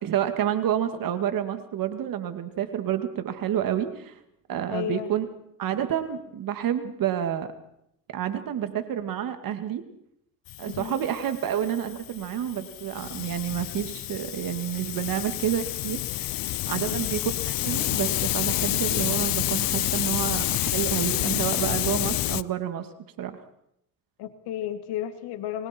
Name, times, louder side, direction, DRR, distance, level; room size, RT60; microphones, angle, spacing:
voice 1, 0.0-4.1 4.5-5.2 5.6-7.5 8.1-9.8 10.6-22.9 23.2-23.4, right 10 dB, 55° right, 8 dB, 2.3 m, -29 dB
voice 2, 4.7-5.1 10.6-11.0 16.7-17.1 24.2-25.7, left 11 dB, 75° left, 9 dB, 2.3 m, -33 dB
Hiss, 10.5-22.4, left 16 dB, 60° left, 0.8 m, -29 dB
28.5 x 21.0 x 4.6 m, 0.76 s
supercardioid pair, 90°, 40 cm